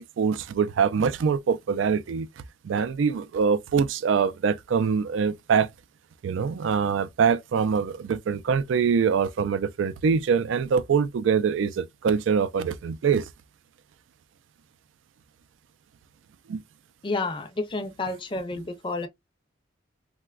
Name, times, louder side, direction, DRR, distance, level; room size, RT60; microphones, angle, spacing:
voice 1, 0.0-2.3 2.6-5.7 6.2-13.3 16.5-16.6, right 6 dB, 80° right, 0.3 m, -24 dB
voice 2, 17.0-19.1, left 3 dB, 25° left, 0.5 m, -30 dB
3.8 x 2.2 x 2.3 m
head